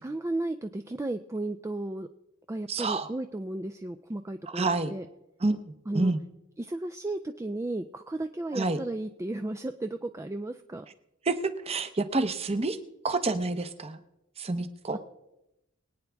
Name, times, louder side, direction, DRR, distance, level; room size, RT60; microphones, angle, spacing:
voice 1, 0.0-2.1 2.5-5.1 5.9-6.1 6.6-10.9 14.9-15.0, right 2 dB, 15° right, 8 dB, 0.3 m, -34 dB
voice 2, 2.7-3.1 4.5-4.9 5.4-6.2 8.5-8.8 11.3-12.8 13.0-14.0 14.4-15.0, right 3 dB, 30° right, 10 dB, 0.8 m, -28 dB
23.0 x 9.3 x 3.5 m, 0.91 s
head